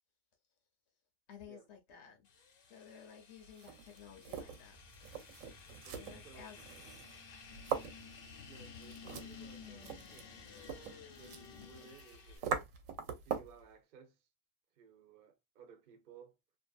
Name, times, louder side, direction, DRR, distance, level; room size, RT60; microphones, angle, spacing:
voice 1, 1.3-2.2 2.7-4.8 5.9-6.6, left 8 dB, 65° left, 0.9 m, -54 dB
sound 1, 2.3-12.4, left 6 dB, 80° left, 1.1 m, -54 dB
sound 2, 3.4-13.6, right 7 dB, 90° right, 1.0 m, -43 dB
sound 3, 4.7-11.8, left 1 dB, 15° left, 0.6 m, -63 dB
voice 2, 5.8-6.5 8.4-10.4 11.2-12.5 13.2-14.3 14.8-16.4, right 7 dB, 50° right, 0.7 m, -59 dB
2.6 x 2.4 x 2.3 m
omnidirectional pair, 1.3 m